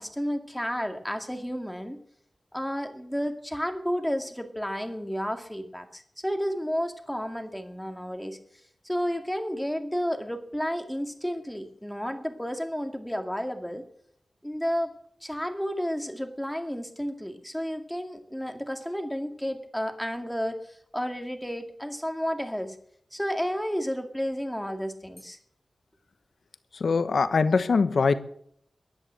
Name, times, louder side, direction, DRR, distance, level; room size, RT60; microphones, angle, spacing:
voice 1, 0.0-2.0 2.5-8.4 8.8-13.8 14.4-14.9 15.2-22.8 23.1-25.4, equal, 5° left, 2.1 m, -31 dB
voice 2, 26.7-28.1, left 4 dB, 85° left, 1.1 m, -22 dB
15.0 x 11.0 x 8.5 m
wide cardioid pair, 100°, 0 cm